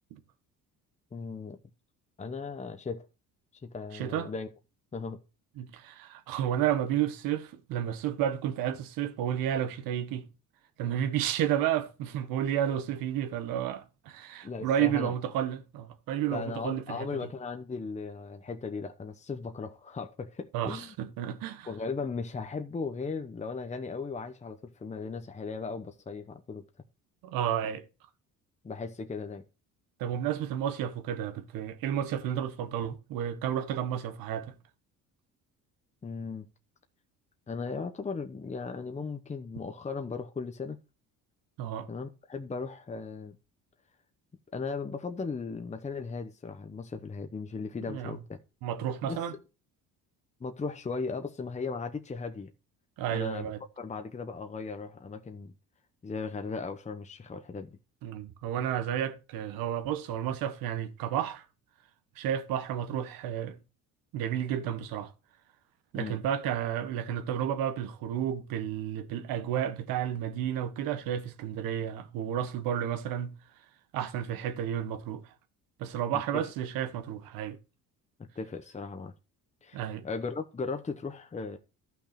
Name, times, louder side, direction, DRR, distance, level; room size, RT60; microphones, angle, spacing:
voice 1, 1.1-1.6 2.2-3.1 3.6-4.5 4.9-5.2 14.4-15.1 16.3-20.9 21.7-26.7 28.6-29.4 36.0-36.5 37.5-40.8 41.9-43.4 44.5-48.4 49.1-49.2 50.4-52.5 53.1-53.5 53.8-55.5 56.0-57.8 65.9-66.2 76.1-76.5 78.2-79.1 79.6-81.6, left 4 dB, 20° left, 1.0 m, -37 dB
voice 2, 3.9-4.3 5.6-10.3 10.8-17.1 20.5-21.7 27.2-27.8 30.0-34.5 41.6-41.9 47.9-48.2 48.6-49.3 53.0-53.6 58.0-61.4 62.2-63.6 64.1-65.1 65.9-73.3 73.9-75.3 75.8-77.6 79.7-80.0, right 10 dB, 85° right, 1.5 m, -31 dB
12.5 x 5.9 x 4.3 m
cardioid pair, 105°, 34 cm